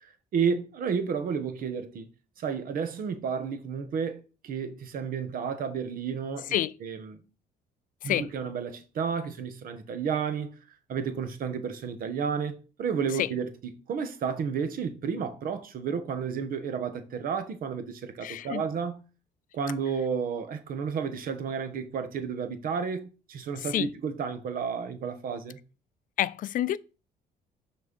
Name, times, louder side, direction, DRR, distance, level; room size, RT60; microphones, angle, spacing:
voice 1, 0.0-2.1 2.4-7.2 8.0-10.5 10.9-13.5 13.9-19.0 19.5-25.6, right 6 dB, 60° right, 1.3 m, -32 dB
voice 2, 18.2-18.6 23.7-23.9 26.2-26.8, left 12 dB, 55° left, 0.5 m, -28 dB
6.3 x 4.4 x 5.4 m
cardioid pair, 110°, 17 cm